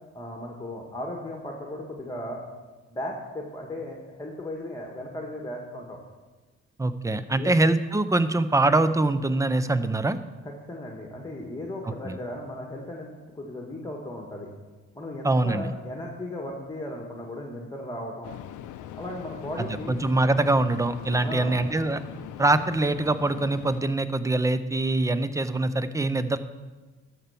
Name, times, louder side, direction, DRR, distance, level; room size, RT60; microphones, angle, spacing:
voice 1, 0.1-2.4 2.9-6.0 7.4-7.5 10.4-14.5 14.9-18.3 18.9-20.0 21.2-21.7, left 1 dB, 15° left, 0 dB, 1.5 m, -36 dB
voice 2, 6.8-10.2 12.0-12.1 15.2-15.7 19.6-22.0 22.4-26.4, right 2 dB, 10° right, 12 dB, 0.5 m, -24 dB
sound 1, 18.2-23.8, left 11 dB, 85° left, 0.6 m, -41 dB
12.0 x 4.5 x 6.9 m, 1.2 s
cardioid pair, 90°, 30 cm